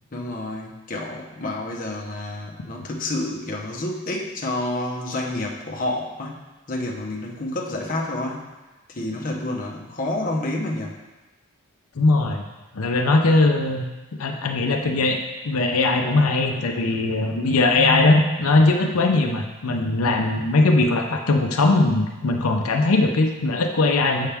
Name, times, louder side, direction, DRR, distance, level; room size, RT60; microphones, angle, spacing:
voice 1, 0.1-6.4 6.7-8.5 8.9-11.0, left 1 dB, 40° left, -1 dB, 0.8 m, -29 dB
voice 2, 12.0-12.4 12.7-13.9 14.2-24.3, left 2 dB, 85° left, 3 dB, 0.6 m, -20 dB
7.1 x 5.7 x 3.4 m, 1.1 s
head